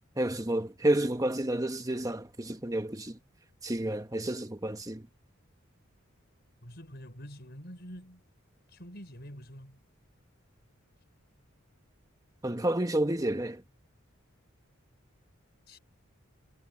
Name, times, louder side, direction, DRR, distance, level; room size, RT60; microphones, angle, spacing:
voice 1, 0.2-3.2 3.6-5.1 12.4-13.6, right 1 dB, 15° right, 1.2 m, -30 dB
voice 2, 6.6-8.2 8.7-9.8 15.7-15.8, equal, 50° left, 5.6 m, -46 dB
head